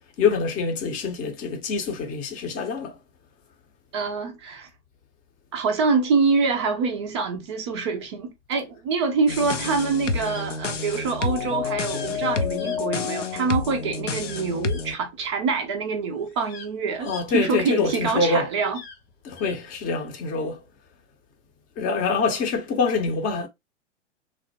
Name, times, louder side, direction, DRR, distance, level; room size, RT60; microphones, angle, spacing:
voice 1, 0.2-3.0 17.0-18.5 19.2-20.6 21.8-23.5, left 4 dB, 20° left, 0.6 m, -25 dB
voice 2, 3.9-4.7 5.5-18.8, right 4 dB, 25° right, 0.4 m, -25 dB
sound 1, 9.3-14.9, left 5 dB, 80° left, 0.5 m, -29 dB
sound 2, 9.5-9.9 10.2-10.5 11.9-12.2 12.6-13.4 14.2-14.9 15.8-15.9 16.2-18.0 18.6-19.6, left 5 dB, 55° left, 0.8 m, -43 dB
3.1 x 2.1 x 2.7 m
figure-of-eight pair, 105°, 36 cm